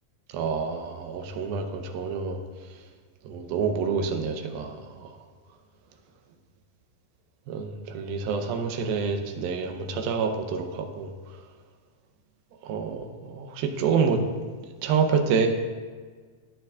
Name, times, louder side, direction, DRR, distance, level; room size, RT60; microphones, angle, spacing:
voice 1, 0.3-2.4 3.3-5.1 7.5-11.1 12.6-14.2 14.8-15.5, right 5 dB, 85° right, 5 dB, 2.6 m, -27 dB
19.5 x 6.7 x 2.4 m, 1.5 s
omnidirectional pair, 4.2 m